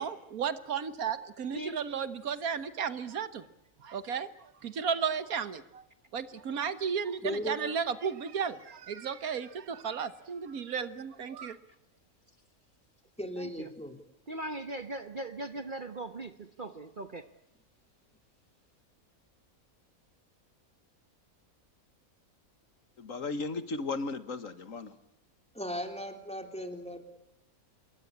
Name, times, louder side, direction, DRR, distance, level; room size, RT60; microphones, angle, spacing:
voice 1, 0.0-3.4 3.8-5.8 6.1-11.6, right 7 dB, 80° right, 1.7 m, -34 dB
voice 2, 7.2-7.6 13.2-14.0 25.5-27.0, equal, 5° left, 3.2 m, -37 dB
voice 3, 13.4-13.7 14.3-17.3, right 2 dB, 40° right, 1.2 m, -39 dB
voice 4, 23.0-25.0, left 3 dB, 65° left, 1.8 m, -35 dB
27.0 x 22.0 x 8.6 m
omnidirectional pair, 1.5 m